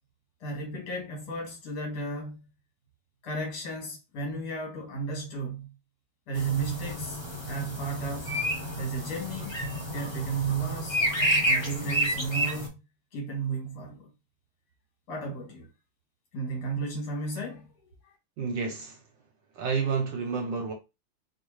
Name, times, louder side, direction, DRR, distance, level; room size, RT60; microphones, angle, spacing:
voice 1, 0.4-2.4 3.2-5.7 6.3-8.3 8.8-9.5 9.9-11.0 11.4-12.7 13.1-14.1 15.1-15.7 16.3-17.7 18.0-18.1, right 4 dB, 75° left, 2.6 m, -33 dB
sound 1, 6.3-12.7, equal, 25° left, 0.5 m, -30 dB
voice 2, 18.4-19.0 19.5-20.7, right 5 dB, 70° right, 1.2 m, -30 dB
4.4 x 2.3 x 3.1 m
omnidirectional pair, 2.4 m